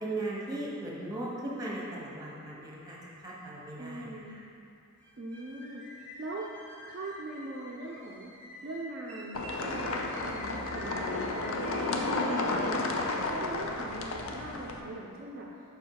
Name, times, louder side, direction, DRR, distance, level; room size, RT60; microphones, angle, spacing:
voice 1, 0.0-3.0 3.2-4.2, right 2 dB, 15° right, -4 dB, 0.9 m, -37 dB
voice 2, 3.8-4.4 5.2-6.5 6.9-8.3 8.6-13.0 13.3-15.5, right 2 dB, 45° right, -4 dB, 0.4 m, -41 dB
sound 1, 5.0-12.8, equal, 5° left, 1.1 m, -48 dB
sound 2, 9.3-14.8, left 2 dB, 65° left, 0.5 m, -32 dB
5.6 x 4.3 x 4.6 m, 2.5 s
head